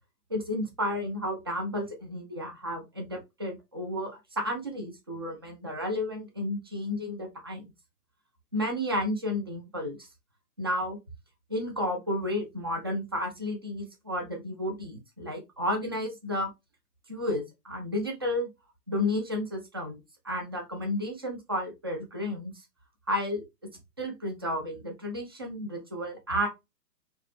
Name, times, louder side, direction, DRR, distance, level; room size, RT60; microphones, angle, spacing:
voice 1, 0.3-7.6 8.5-10.1 10.6-11.0 11.5-16.5 17.1-18.5 18.9-20.0 20.2-22.5 23.1-23.4 24.0-26.5, left 1 dB, 15° right, 2 dB, 0.4 m, -32 dB
4.4 x 2.9 x 3.1 m, 0.22 s
figure-of-eight pair, 120°, 49 cm